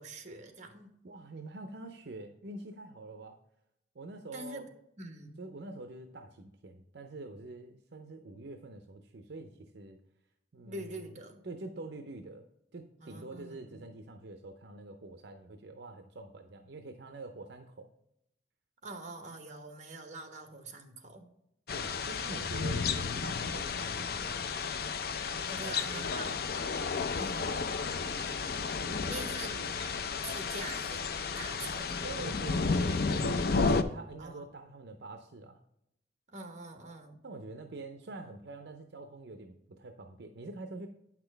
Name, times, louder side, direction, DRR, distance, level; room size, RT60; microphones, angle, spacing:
voice 1, 0.0-0.9 4.3-4.7 5.0-5.4 10.6-11.4 13.0-13.8 18.8-21.3 25.5-26.5 27.2-27.7 29.1-29.5 30.2-31.0 31.4-32.0 34.2-34.4 36.3-37.2, right 2 dB, 40° right, 5 dB, 1.2 m, -44 dB
voice 2, 1.0-3.4 3.9-4.7 5.4-10.0 10.5-11.2 11.4-12.5 12.7-17.9 21.7-24.5 25.6-26.4 27.4-27.7 28.8-30.3 31.5-31.6 32.0-35.6 37.2-40.9, right 2 dB, 65° right, 6 dB, 0.6 m, -46 dB
sound 1, 21.7-33.8, left 4 dB, 55° left, 0.5 m, -32 dB
8.8 x 6.0 x 3.3 m, 0.79 s
head